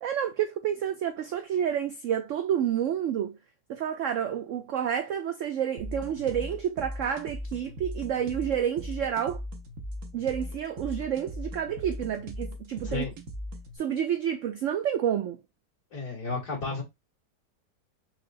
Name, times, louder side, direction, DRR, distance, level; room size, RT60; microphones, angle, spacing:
voice 1, 0.0-3.4 3.7-9.4 10.1-13.1 13.8-15.4, right 9 dB, 80° right, 0.6 m, -29 dB
sound 1, 5.8-13.8, equal, 55° right, 1.1 m, -38 dB
voice 2, 15.9-16.8, left 3 dB, 65° left, 2.1 m, -32 dB
4.4 x 3.1 x 2.5 m
omnidirectional pair, 1.8 m